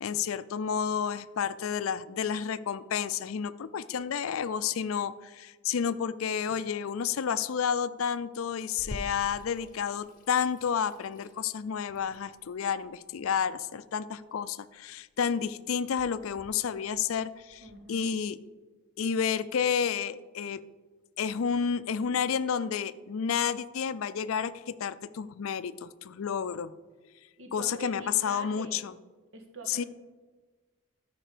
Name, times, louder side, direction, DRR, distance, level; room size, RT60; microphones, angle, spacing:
voice 1, 0.0-17.6 17.9-18.4 19.0-20.6 21.2-26.7 27.5-28.9 29.7-29.8, left 7 dB, 85° left, 16 dB, 0.4 m, -30 dB
Water tap faucet / Sink (filling or washing), 8.8-17.8, left 1 dB, 40° left, 0.7 m, -48 dB
voice 2, 17.6-18.1 27.4-28.8 29.3-29.9, right 3 dB, 75° right, 3 dB, 1.6 m, -45 dB
13.0 x 5.2 x 5.0 m, 1.3 s
head